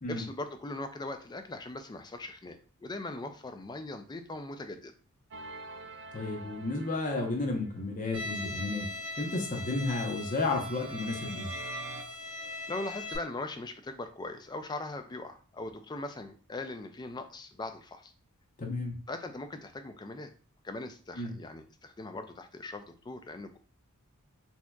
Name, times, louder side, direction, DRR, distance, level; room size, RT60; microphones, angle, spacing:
voice 1, 0.1-4.9 12.7-18.1 19.1-20.3 20.6-23.6, left 2 dB, 20° left, 7 dB, 0.4 m, -40 dB
sound 1, 5.3-8.0 10.3-12.0, right 4 dB, 55° right, 0.4 m, -46 dB
voice 2, 6.1-8.9 9.2-11.5 18.6-19.0 21.2-21.3, left 2 dB, 35° left, 2 dB, 0.8 m, -32 dB
Bowed string instrument, 8.1-13.2, left 2 dB, 5° right, 1.4 m, -40 dB
4.3 x 2.8 x 2.3 m, 0.39 s
head